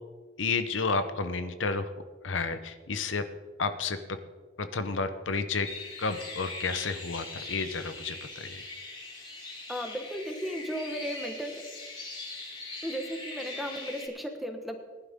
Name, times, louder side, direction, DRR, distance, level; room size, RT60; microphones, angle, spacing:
voice 1, 0.4-1.9 2.2-3.2 3.6-4.2 4.6-5.7 6.0-8.6, left 4 dB, 80° left, 10 dB, 0.8 m, -31 dB
sound 1, 5.6-14.1, left 2 dB, 25° left, 3.2 m, -41 dB
voice 2, 9.7-11.7 12.8-14.8, equal, ahead, 4 dB, 1.3 m, -35 dB
19.5 x 11.0 x 3.6 m, 1.4 s
head